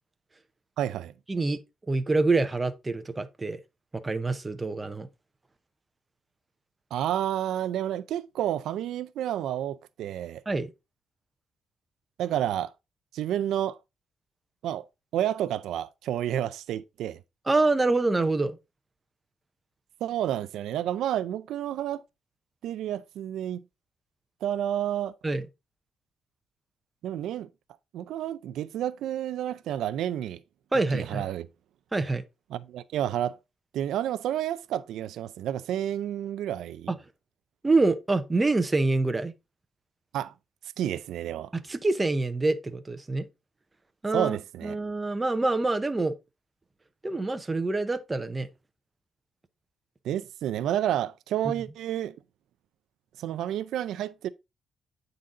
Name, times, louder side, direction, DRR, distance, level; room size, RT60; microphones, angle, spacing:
voice 1, 0.8-1.1 6.9-10.4 12.2-12.7 13.1-13.8 14.6-14.8 15.1-17.2 20.0-22.0 22.6-23.6 24.4-25.1 27.0-27.5 27.9-30.4 30.9-31.5 32.5-33.4 33.7-36.9 40.1-40.3 40.8-41.5 44.1-44.8 50.0-52.1 53.2-54.3, right 11 dB, 90° right, 0.4 m, -30 dB
voice 2, 1.3-1.6 1.9-3.6 4.0-5.1 10.5-10.7 17.5-18.6 25.2-25.5 30.7-31.3 31.9-32.2 36.9-37.0 37.6-39.3 41.5-43.3 44.0-44.4 44.6-46.1 47.0-48.5, right 3 dB, 15° right, 0.6 m, -26 dB
8.7 x 3.9 x 3.7 m
cardioid pair, 140°, 0 cm